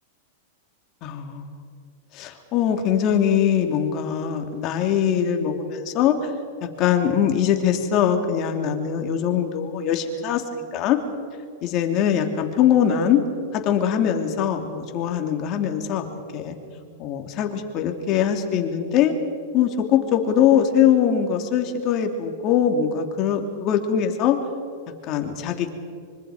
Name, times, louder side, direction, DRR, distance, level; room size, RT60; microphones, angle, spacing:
voice 1, 1.0-1.6 2.1-6.3 6.8-11.0 11.6-13.2 13.5-16.5 17.0-19.1 19.5-24.4 25.1-25.7, left 9 dB, 40° left, 4 dB, 2.8 m, -22 dB
25.0 x 24.0 x 5.0 m, 2.2 s
hypercardioid pair, 135°, 0 cm